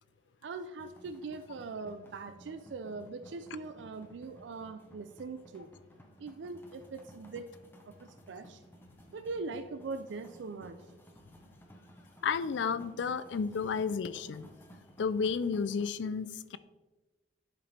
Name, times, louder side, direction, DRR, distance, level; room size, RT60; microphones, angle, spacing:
voice 1, 0.4-5.7 6.2-7.5 7.8-8.6 9.1-10.9, right 3 dB, 80° right, 9 dB, 0.4 m, -41 dB
sound 1, 0.8-15.9, equal, 10° left, 0.6 m, -56 dB
voice 2, 12.2-14.5 15.0-16.6, left 5 dB, 80° left, 15 dB, 0.4 m, -32 dB
10.5 x 5.0 x 3.3 m, 1.2 s
head